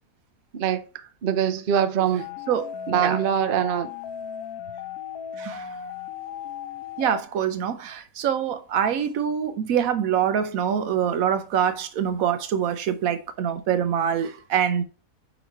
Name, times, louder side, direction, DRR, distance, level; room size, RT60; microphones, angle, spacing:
voice 1, 1.2-2.2 2.9-3.9, right 9 dB, 50° right, 0.7 m, -23 dB
sound 1, 2.2-7.2, left 8 dB, 75° left, 1.1 m, -36 dB
voice 2, 2.5-3.2 5.4-5.7 7.0-14.8, right 8 dB, 70° right, 1.0 m, -25 dB
8.8 x 3.1 x 4.5 m
omnidirectional pair, 1.6 m